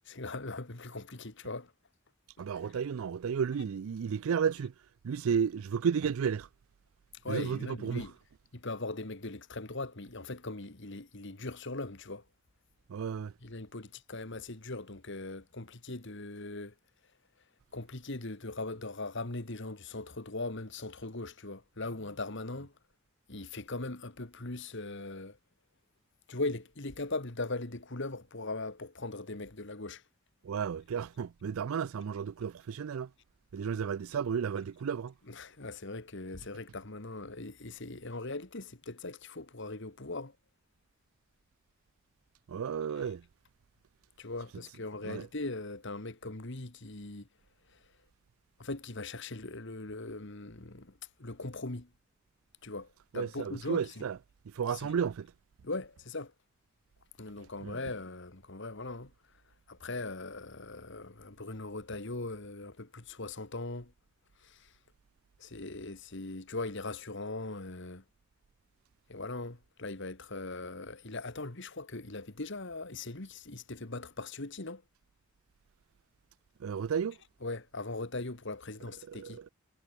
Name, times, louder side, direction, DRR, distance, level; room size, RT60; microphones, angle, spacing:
voice 1, 0.0-1.7 2.4-2.5 7.2-8.1 8.5-12.2 13.4-16.7 17.7-22.7 23.3-25.4 26.3-30.0 35.3-40.4 44.2-47.3 48.6-51.9 52.6-54.0 54.7-54.9 55.6-56.3 57.2-59.1 59.7-63.9 64.4-64.7 65.4-68.0 69.1-74.8 77.4-79.4, left 2 dB, 55° left, 1.9 m, -40 dB
voice 2, 2.4-4.7 5.0-6.5 7.3-8.1 12.9-13.3 30.4-33.1 33.5-35.1 42.5-43.2 45.0-45.3 53.1-54.2 54.5-55.3 57.6-57.8 76.6-77.2 79.1-79.5, right 7 dB, 75° right, 0.4 m, -33 dB
head